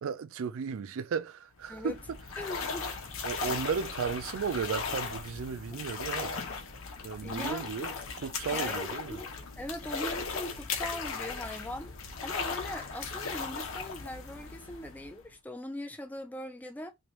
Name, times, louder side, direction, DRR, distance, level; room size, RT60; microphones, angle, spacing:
voice 1, 0.0-1.9 3.2-6.4 7.0-7.9 8.2-9.2, right 6 dB, 75° right, 0.4 m, -34 dB
sound 1, 1.6-15.3, left 5 dB, 75° left, 0.8 m, -37 dB
voice 2, 2.4-2.9 7.2-7.7 8.5-9.3 9.6-11.9 12.2-16.9, left 1 dB, 10° left, 0.4 m, -40 dB
3.1 x 2.5 x 3.1 m
head